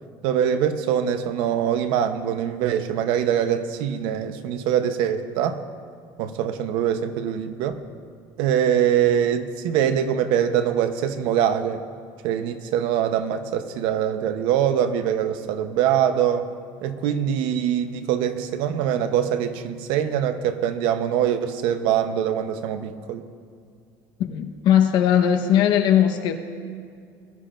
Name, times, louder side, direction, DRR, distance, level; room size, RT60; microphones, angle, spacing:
voice 1, 0.2-5.6 6.2-7.7 8.4-11.8 12.2-16.5 16.8-23.3, right 9 dB, 80° right, 9 dB, 0.8 m, -23 dB
voice 2, 24.3-26.3, left 9 dB, 60° left, 5 dB, 1.1 m, -19 dB
21.0 x 12.0 x 2.5 m, 2.3 s
cardioid pair, 160°, 8 cm